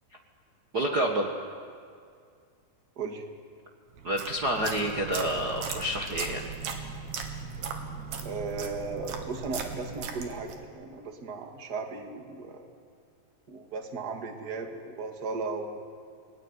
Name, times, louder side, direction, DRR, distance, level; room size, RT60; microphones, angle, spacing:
voice 1, 0.7-1.3 4.0-6.4, right 1 dB, 70° right, 0 dB, 0.9 m, -28 dB
sound 1, 4.0-10.7, right 6 dB, 85° right, 3.9 m, -38 dB
voice 2, 8.2-12.6 13.5-15.8, right 4 dB, 35° right, 3 dB, 1.9 m, -36 dB
28.5 x 19.5 x 9.8 m, 2.2 s
omnidirectional pair, 4.5 m